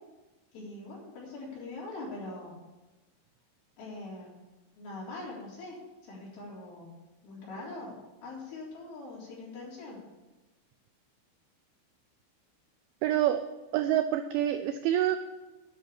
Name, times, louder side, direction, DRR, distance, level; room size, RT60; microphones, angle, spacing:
voice 1, 0.5-2.6 3.8-4.3 4.8-5.8 6.0-6.9 7.2-10.0, left 2 dB, 50° left, -5 dB, 5.2 m, -42 dB
voice 2, 13.0-13.4 13.7-15.2, right 12 dB, 90° right, 8 dB, 2.5 m, -26 dB
10.5 x 6.3 x 8.7 m, 1.1 s
omnidirectional pair, 5.7 m